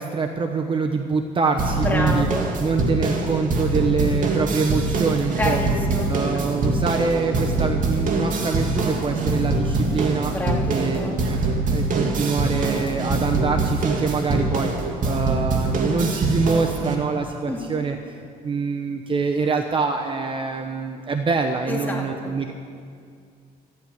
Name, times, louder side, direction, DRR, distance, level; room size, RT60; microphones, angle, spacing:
voice 1, 0.0-2.3 2.6-5.6 6.1-10.3 10.7-11.0 11.2-11.4 11.7-22.5, right 4 dB, 30° right, 4 dB, 0.9 m, -25 dB
sound 1, 1.6-16.9, right 2 dB, 50° right, 2.2 m, -24 dB
voice 2, 1.8-2.5 5.4-6.1 10.3-11.2 17.5-17.7 21.7-22.4, left 1 dB, 10° left, -2 dB, 2.8 m, -28 dB
14.5 x 9.0 x 9.3 m, 2.2 s
cardioid pair, 110°, 17 cm